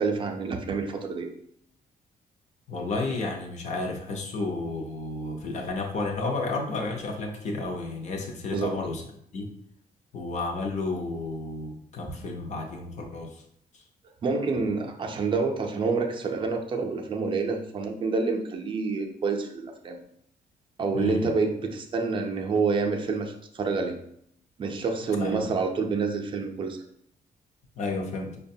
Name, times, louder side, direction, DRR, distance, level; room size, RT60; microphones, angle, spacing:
voice 1, 0.0-1.3 8.5-8.7 14.2-20.0 20.8-24.0 24.6-26.8, right 4 dB, 35° right, 4 dB, 0.5 m, -28 dB
voice 2, 2.7-9.0 9.3-9.5 10.1-13.4 13.7-13.8 20.9-21.3 25.2-25.5 27.8-28.4, left 3 dB, 50° left, 3 dB, 0.6 m, -32 dB
5.6 x 2.2 x 2.6 m, 0.70 s
cardioid pair, 170°, 16 cm